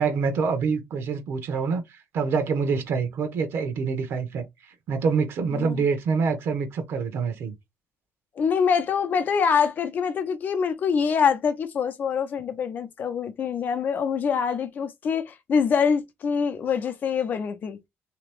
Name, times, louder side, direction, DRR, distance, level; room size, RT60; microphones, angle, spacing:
voice 1, 0.0-7.5, right 5 dB, 65° right, 0.9 m, -26 dB
voice 2, 8.4-17.8, left 6 dB, 45° left, 0.7 m, -25 dB
3.4 x 3.0 x 3.3 m
cardioid pair, 165°, 4 cm